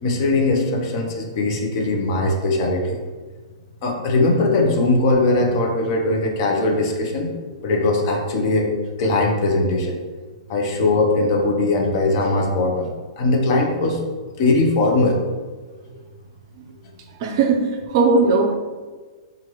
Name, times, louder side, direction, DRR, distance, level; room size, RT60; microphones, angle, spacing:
voice 1, 0.0-3.0 3.8-7.4 7.6-8.7 9.0-10.0 10.5-12.9 13.2-14.0 14.4-15.2, left 2 dB, 50° left, 0 dB, 0.8 m, -20 dB
voice 2, 17.2-18.6, right 4 dB, 50° right, 3 dB, 0.5 m, -18 dB
4.6 x 2.5 x 3.0 m, 1.4 s
hypercardioid pair, 140°, 3 cm